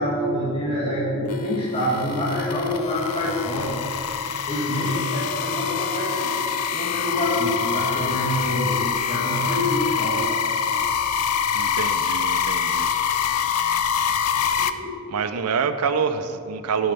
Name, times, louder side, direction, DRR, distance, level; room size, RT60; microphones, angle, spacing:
voice 1, 0.0-3.7 4.5-6.4 6.7-10.2 14.6-14.9, left 1 dB, 25° left, -7 dB, 1.8 m, -26 dB
sound 1, 1.3-14.7, left 7 dB, 85° left, 0.5 m, -25 dB
voice 2, 11.5-12.9 15.1-16.9, right 6 dB, 90° right, 10 dB, 0.5 m, -26 dB
13.5 x 5.7 x 5.5 m, 2.6 s
head